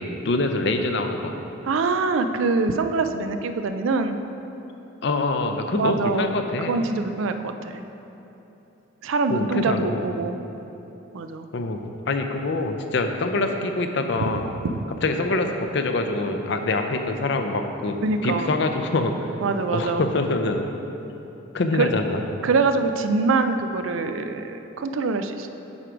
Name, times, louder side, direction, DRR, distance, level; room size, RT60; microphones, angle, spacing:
voice 1, 0.0-1.3 5.0-6.7 9.3-10.0 11.5-14.5 15.0-19.1 19.7-20.6 21.5-22.2, left 2 dB, 60° left, 6 dB, 0.5 m, -25 dB
voice 2, 1.7-4.2 5.7-6.3 6.7-7.8 9.0-10.4 11.1-11.5 14.6-14.7 18.0-18.6 19.4-20.1 21.7-21.9 22.4-25.5, right 4 dB, 75° right, 8 dB, 0.4 m, -24 dB
8.0 x 4.6 x 5.0 m, 3.0 s
head